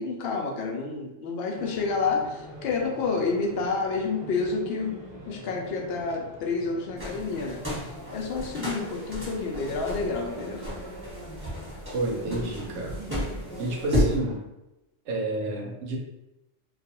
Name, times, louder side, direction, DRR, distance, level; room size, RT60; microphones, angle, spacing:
voice 1, 0.0-5.0 5.3-7.6 8.1-10.7, left 4 dB, 65° left, 1 dB, 0.7 m, -29 dB
sound 1, 1.5-14.4, equal, 30° right, 0.6 m, -42 dB
sound 2, 7.0-14.2, equal, 10° right, 1.0 m, -32 dB
voice 2, 11.9-13.0 13.6-14.4 15.1-16.0, right 2 dB, 75° right, 0 dB, 0.9 m, -30 dB
2.4 x 2.3 x 2.8 m, 0.94 s
omnidirectional pair, 1.3 m